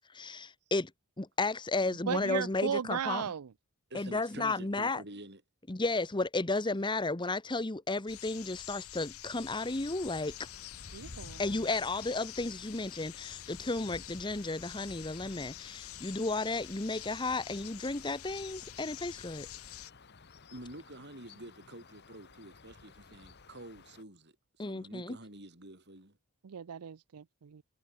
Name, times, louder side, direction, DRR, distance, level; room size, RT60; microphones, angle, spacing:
voice 1, 0.1-0.9 1.2-3.2 3.9-5.0 5.7-10.3 11.4-19.5 24.6-25.2, left 2 dB, 20° left, 1.0 m, -33 dB
voice 2, 2.1-3.5 10.9-11.4 26.4-27.6, right 7 dB, 85° right, 0.5 m, -36 dB
voice 3, 3.9-5.4 20.5-24.3 24.6-26.2, right 1 dB, 50° right, 5.6 m, -48 dB
sound 1, 8.1-19.9, left 13 dB, 75° left, 0.9 m, -47 dB
sound 2, 9.6-24.0, left 3 dB, 50° left, 1.3 m, -55 dB
head